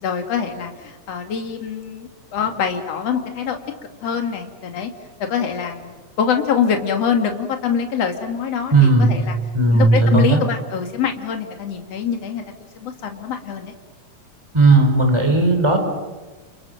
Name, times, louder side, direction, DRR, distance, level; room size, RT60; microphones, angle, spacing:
voice 1, 0.0-3.6 4.0-4.9 5.3-5.9 6.2-9.3 9.7-12.4 12.8-13.7, left 7 dB, 55° left, 5 dB, 3.3 m, -24 dB
voice 2, 8.7-9.2 9.5-10.4 14.5-15.8, right 2 dB, 10° right, 5 dB, 4.0 m, -15 dB
30.0 x 29.0 x 6.6 m, 1.3 s
omnidirectional pair, 3.5 m